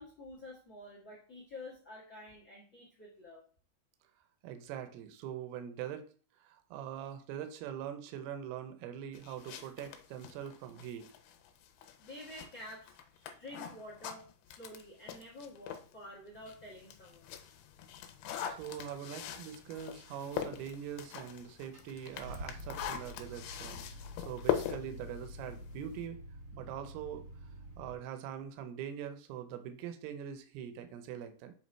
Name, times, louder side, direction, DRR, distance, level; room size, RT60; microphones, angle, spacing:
voice 1, 0.0-3.4 12.0-17.4, left 1 dB, 60° left, -2 dB, 1.2 m, -49 dB
voice 2, 4.4-6.1 6.4-11.1 18.5-23.8 24.3-26.2 26.5-27.3 27.8-31.5, right 9 dB, 75° right, 8 dB, 2.6 m, -43 dB
sound 1, 9.1-15.9 16.4-26.1, left 10 dB, 80° left, 2.6 m, -42 dB
Car / Engine starting, 21.7-27.9, equal, 40° right, 1.1 m, -48 dB
7.9 x 3.6 x 4.4 m, 0.40 s
omnidirectional pair, 4.9 m